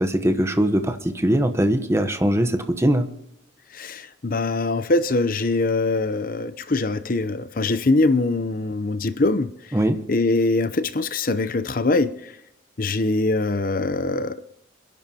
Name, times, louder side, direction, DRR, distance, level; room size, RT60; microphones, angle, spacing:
voice 1, 0.0-3.1 9.7-10.0, right 1 dB, 15° right, 1.0 m, -21 dB
voice 2, 3.7-9.5 10.1-12.1 12.8-14.4, left 2 dB, 45° left, 0.7 m, -23 dB
28.0 x 11.0 x 2.9 m
head